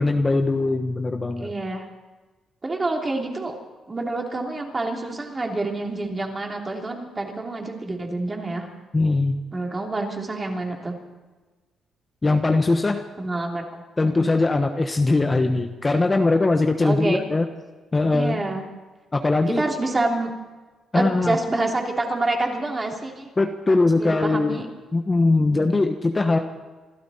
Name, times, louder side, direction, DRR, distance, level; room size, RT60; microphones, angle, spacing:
voice 1, 0.0-1.5 8.9-9.4 12.2-13.0 14.0-17.5 17.9-18.4 19.1-19.6 20.9-21.4 23.4-24.6 24.9-26.4, left 3 dB, 25° left, 5 dB, 1.1 m, -21 dB
voice 2, 1.4-1.8 2.6-3.6 3.9-8.7 9.5-11.0 13.2-14.3 16.8-17.3 18.1-18.6 19.5-20.3 20.9-23.3 24.0-24.6 25.4-25.8, right 2 dB, 25° right, 1 dB, 3.2 m, -27 dB
27.5 x 12.5 x 4.3 m, 1.3 s
cardioid pair, 90°, 0 cm